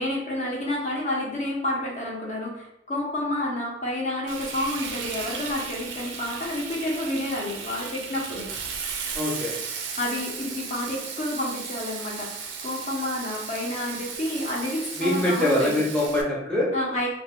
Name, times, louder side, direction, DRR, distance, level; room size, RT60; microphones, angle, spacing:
voice 1, 0.0-8.5 10.0-15.8 16.7-17.1, left 1 dB, 40° left, -2 dB, 0.8 m, -29 dB
Frying (food), 4.3-16.2, right 6 dB, 80° right, 0.4 m, -35 dB
voice 2, 9.1-9.5 15.0-16.7, left 1 dB, 5° left, -6 dB, 0.6 m, -23 dB
2.3 x 2.2 x 3.5 m, 0.78 s
head